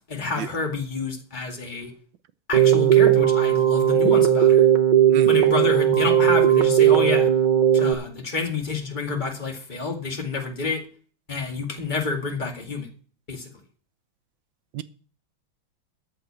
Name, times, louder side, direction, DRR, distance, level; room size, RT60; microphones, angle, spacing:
voice 1, 0.1-1.9 2.5-4.7 5.3-7.3 7.7-10.8 11.3-12.9 13.3-13.5, left 3 dB, 25° left, 2 dB, 2.1 m, -28 dB
Keyboard (musical), 2.5-7.9, right 10 dB, 50° right, 0.5 m, -17 dB
voice 2, 5.1-5.5 14.7-14.8, right 11 dB, 70° right, 11 dB, 1.4 m, -32 dB
13.5 x 4.9 x 8.6 m, 0.42 s
omnidirectional pair, 2.2 m